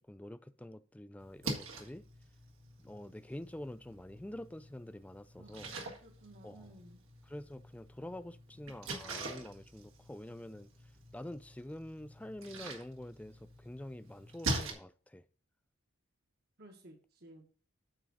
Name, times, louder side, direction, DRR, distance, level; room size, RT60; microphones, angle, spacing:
voice 1, 0.0-2.0 2.8-5.7 6.4-6.7 7.2-10.7 11.1-15.3, left 1 dB, 5° left, 0.3 m, -47 dB
Splash splatter, 1.2-14.7, right 2 dB, 75° right, 1.8 m, -44 dB
voice 2, 6.0-7.0 16.6-17.4, right 1 dB, 50° right, 1.4 m, -56 dB
8.9 x 3.8 x 6.3 m
head